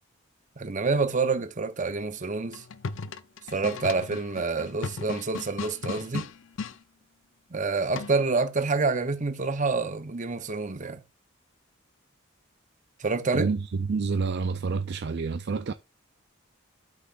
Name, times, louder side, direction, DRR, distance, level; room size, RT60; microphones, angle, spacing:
voice 1, 0.6-2.6 3.5-6.3 7.5-11.0 13.0-13.5, right 4 dB, 35° right, 0.8 m, -27 dB
sound 1, 2.4-6.8 8.0-8.4, left 4 dB, 65° left, 0.6 m, -36 dB
voice 2, 13.3-15.7, right 4 dB, 50° right, 0.4 m, -28 dB
12.0 x 5.8 x 2.5 m
head